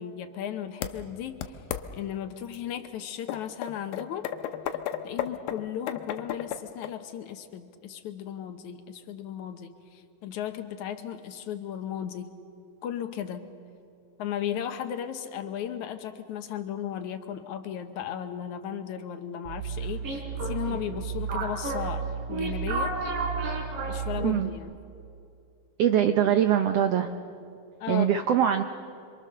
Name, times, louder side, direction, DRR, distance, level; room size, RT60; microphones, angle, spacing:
voice 1, 0.0-1.6 1.9-4.3 5.0-12.4 12.8-13.5 14.2-23.0 23.9-24.7 27.8-28.2, left 9 dB, 65° left, 8 dB, 2.2 m, -35 dB
sound 1, 0.8-0.9 1.4-1.8 2.5-2.6 3.3-6.9, left 11 dB, 85° left, 2.7 m, -33 dB
random sound of beeps and boops that I made, 19.5-24.6, right 4 dB, 75° right, 4.9 m, -31 dB
voice 2, 25.8-27.1 27.9-28.6, right 10 dB, 90° right, 7 dB, 1.3 m, -22 dB
27.0 x 25.0 x 6.7 m, 2.6 s
omnidirectional pair, 4.0 m